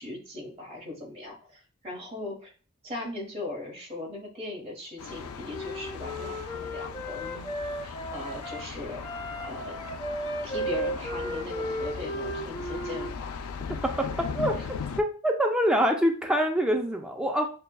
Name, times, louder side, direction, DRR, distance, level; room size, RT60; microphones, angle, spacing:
voice 1, 0.0-2.5 2.8-7.5 7.8-9.8 10.4-13.4 14.5-14.7, left 2 dB, 30° right, 0 dB, 1.2 m, -39 dB
Thunder, 5.0-15.0, left 5 dB, 85° left, 0.4 m, -38 dB
Wind instrument woodwind instrument, 5.0-8.6 9.0-13.1, equal, 20° left, 0.8 m, -35 dB
voice 2, 13.8-14.6 15.0-17.5, equal, 5° right, 2 dB, 0.3 m, -25 dB
6.5 x 2.2 x 2.2 m, 0.39 s
head